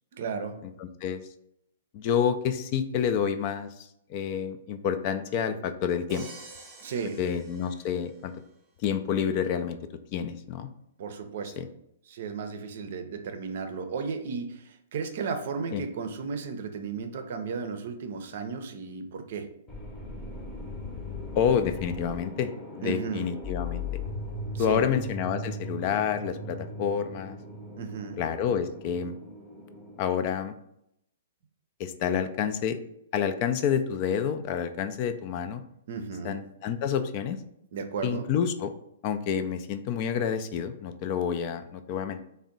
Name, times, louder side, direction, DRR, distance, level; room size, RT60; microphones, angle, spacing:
voice 1, 0.1-0.6 6.8-7.2 11.0-11.6 12.1-19.5 22.8-23.3 24.5-24.9 27.8-28.2 35.9-36.3 37.7-38.3, right 5 dB, 60° right, 6 dB, 0.5 m, -34 dB
voice 2, 0.8-1.2 1.9-3.7 4.1-6.3 7.2-8.3 8.8-9.8 10.1-10.7 11.6-11.7 15.7-15.8 21.4-22.5 22.8-23.8 24.6-27.4 28.2-29.2 30.0-30.5 31.8-32.8 33.1-35.6 36.2-37.4 38.0-38.7 39.0-42.3, left 8 dB, 40° left, 10 dB, 0.3 m, -28 dB
Crash cymbal, 6.1-8.3, right 3 dB, 20° right, 0.8 m, -48 dB
sound 1, 19.7-30.1, left 2 dB, 15° left, 0.7 m, -38 dB
3.4 x 2.1 x 3.8 m, 0.76 s
hypercardioid pair, 120°, 0 cm